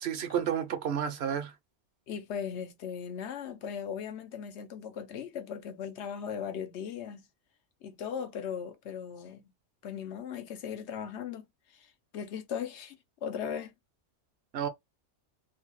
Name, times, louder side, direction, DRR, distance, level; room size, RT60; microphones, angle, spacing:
voice 1, 0.0-1.5 14.5-14.7, right 8 dB, 70° right, 0.9 m, -31 dB
voice 2, 2.1-7.3 7.8-9.5 9.8-11.4 11.7-11.9 12.1-13.7, left 7 dB, 75° left, 0.9 m, -38 dB
2.7 x 2.3 x 3.0 m
omnidirectional pair, 1.2 m